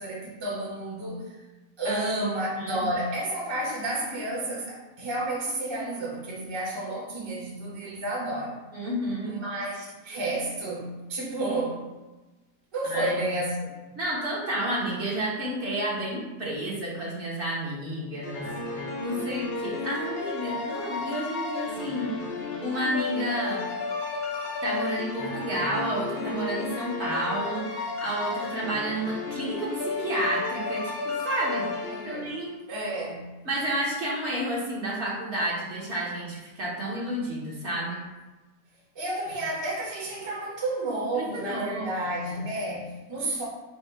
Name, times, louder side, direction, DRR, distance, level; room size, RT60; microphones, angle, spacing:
voice 1, 0.0-1.4 1.8-8.6 9.2-11.9 12.7-13.7 31.9-32.3 32.7-33.3 38.9-43.5, right 1 dB, 20° right, -5 dB, 0.8 m, -31 dB
voice 2, 1.8-2.8 8.7-9.4 12.8-13.1 14.0-18.5 18.7-22.1 22.6-23.7 24.6-31.7 32.0-32.6 33.4-38.0 41.1-41.9, right 1 dB, 50° right, -5 dB, 1.2 m, -31 dB
sound 1, 18.2-32.5, left 3 dB, 65° left, 0.6 m, -33 dB
4.3 x 2.3 x 4.6 m, 1.1 s
omnidirectional pair, 1.7 m